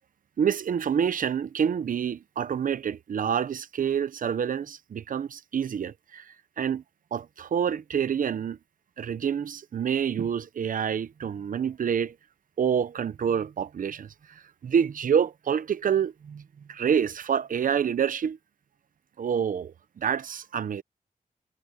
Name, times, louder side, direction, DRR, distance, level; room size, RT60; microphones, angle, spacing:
voice 1, 0.4-6.8 7.1-8.6 9.0-12.1 12.6-18.4 19.2-20.8, right 8 dB, 70° right, 0.7 m, -27 dB
wide cardioid pair, 120°, 15 cm